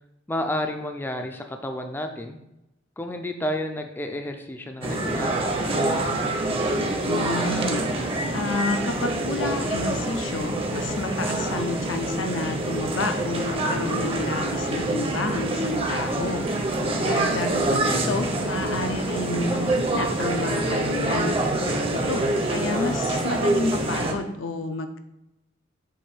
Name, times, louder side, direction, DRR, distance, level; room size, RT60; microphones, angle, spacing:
voice 1, 0.3-2.4 3.0-5.3 14.6-14.8 22.7-23.1, left 1 dB, 10° left, 5 dB, 0.4 m, -31 dB
sound 1, 4.8-24.1, right 2 dB, 30° right, 0.7 m, -26 dB
voice 2, 7.0-21.6 21.9-25.0, left 3 dB, 75° left, 6 dB, 0.6 m, -30 dB
sound 2, 10.5-21.3, right 2 dB, 65° right, 1.1 m, -40 dB
7.3 x 2.6 x 4.9 m, 0.90 s
head